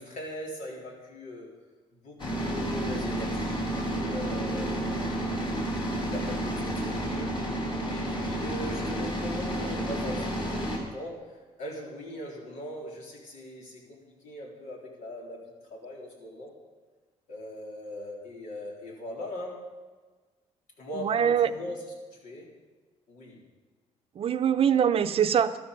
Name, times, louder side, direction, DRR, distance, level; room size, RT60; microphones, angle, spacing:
voice 1, 0.0-1.5 1.9-4.7 5.8-16.5 17.3-19.7 20.8-21.8 22.1-22.5 23.1-23.4, left 1 dB, 75° left, -1 dB, 3.9 m, -40 dB
sound 1, 2.2-10.8, right 1 dB, 40° left, 4.0 m, -31 dB
voice 2, 21.0-21.5 24.2-25.6, right 8 dB, 50° right, 10 dB, 0.7 m, -23 dB
13.0 x 12.5 x 5.4 m, 1.4 s
cardioid pair, 115°, 13 cm